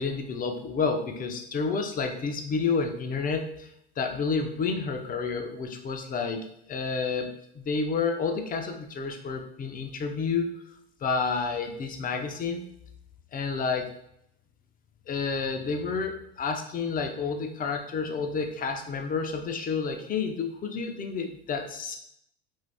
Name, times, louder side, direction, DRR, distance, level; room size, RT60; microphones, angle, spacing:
voice 1, 0.0-3.7 4.0-10.6 11.0-12.7 13.3-13.9 15.1-22.0, left 5 dB, 25° left, 5 dB, 0.5 m, -30 dB
2.6 x 2.5 x 3.4 m, 0.74 s
hypercardioid pair, 90°, 33 cm